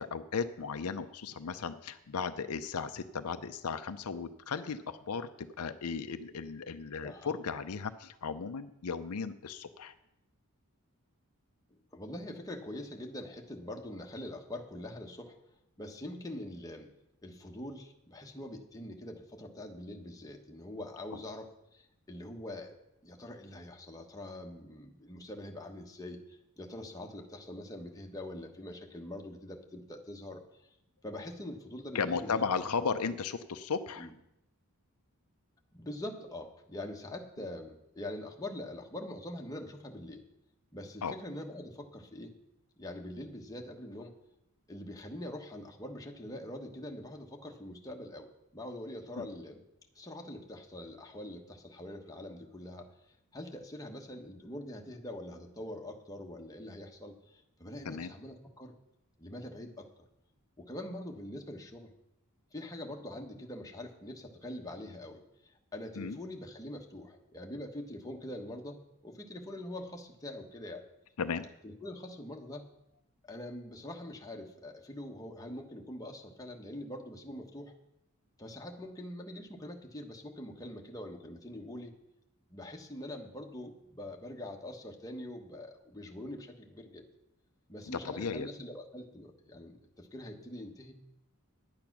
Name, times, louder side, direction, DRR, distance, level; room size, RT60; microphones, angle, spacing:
voice 1, 0.0-9.9 31.9-34.1 41.0-41.1 49.2-49.3 57.8-58.1 66.0-66.2 71.2-71.5 87.9-88.5, left 5 dB, 80° left, 9 dB, 0.6 m, -35 dB
voice 2, 11.7-15.4 15.8-16.9 17.2-22.8 23.0-30.6 31.0-32.5 34.0-34.1 35.7-40.2 40.7-42.3 42.8-44.2 44.7-48.3 48.5-49.6 49.9-52.9 53.3-58.7 59.2-59.9 60.6-61.9 62.5-70.8 71.6-72.7 73.2-77.7 78.4-81.9 82.5-87.0 87.7-90.9, left 1 dB, 15° left, 1 dB, 1.2 m, -44 dB
10.5 x 8.7 x 6.0 m, 0.84 s
head